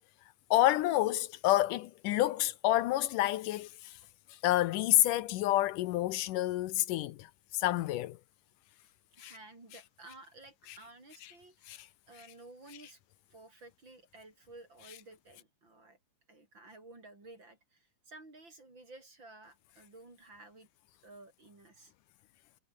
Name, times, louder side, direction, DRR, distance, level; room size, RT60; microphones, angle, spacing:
voice 1, 0.5-3.9 4.4-7.3 7.5-8.2 9.2-9.3 11.7-11.8, left 15 dB, 80° left, 2.3 m, -28 dB
voice 2, 8.8-13.0 13.3-16.0 16.3-20.7 21.0-21.9, right 2 dB, 35° right, 7.1 m, -54 dB
omnidirectional pair, 3.8 m